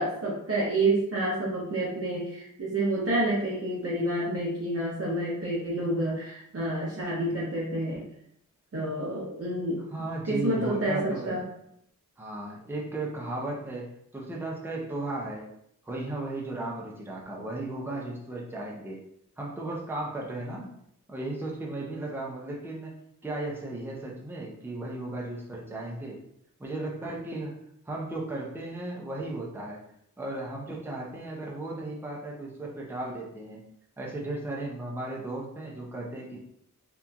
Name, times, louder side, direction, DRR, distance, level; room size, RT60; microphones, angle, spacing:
voice 1, 0.0-8.1 8.7-9.8 10.2-11.4, right 1 dB, 45° right, -6 dB, 0.7 m, -29 dB
voice 2, 9.9-11.4 12.2-15.5 15.8-19.0 19.4-20.7 21.1-23.0 23.2-26.2 26.6-27.5 27.9-29.8 30.2-33.6 34.0-36.4, right 2 dB, 5° right, -3 dB, 0.6 m, -35 dB
2.8 x 2.4 x 2.3 m, 0.72 s
wide cardioid pair, 60°, 33 cm